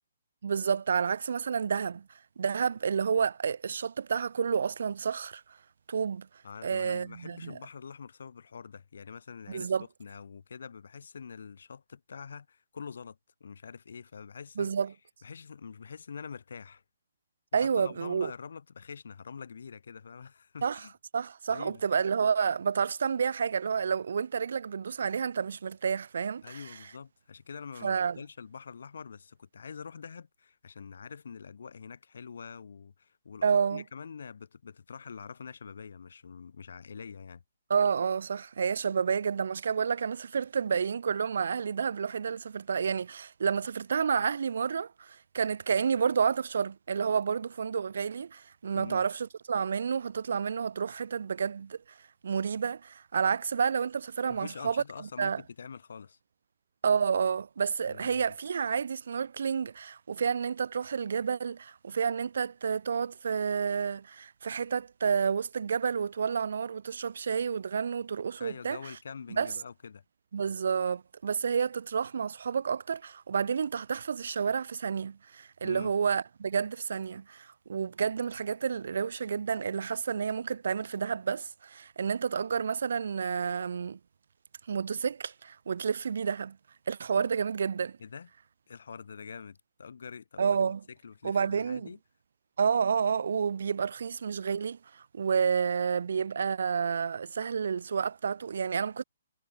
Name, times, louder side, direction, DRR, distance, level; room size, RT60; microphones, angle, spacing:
voice 1, 0.4-2.1 2.4-5.4 5.9-6.3 6.6-7.6 9.5-9.8 14.6-14.9 17.5-18.3 20.6-20.8 21.1-26.6 27.8-28.2 33.4-33.8 37.7-51.8 52.2-54.8 55.2-55.4 56.8-68.8 69.4-69.5 70.3-84.0 84.7-86.6 86.9-88.0 90.4-90.8 91.2-91.9 92.6-99.0, right 6 dB, 65° right, 0.6 m, -30 dB
voice 2, 6.4-9.7 10.0-14.7 15.2-16.8 17.5-20.9 21.5-21.8 26.4-37.4 48.7-49.0 54.3-56.2 57.9-58.3 68.4-70.0 75.6-75.9 88.0-88.3 88.7-90.7 91.0-92.0, left 6 dB, 70° left, 3.1 m, -45 dB
hypercardioid pair, 175°, 0 cm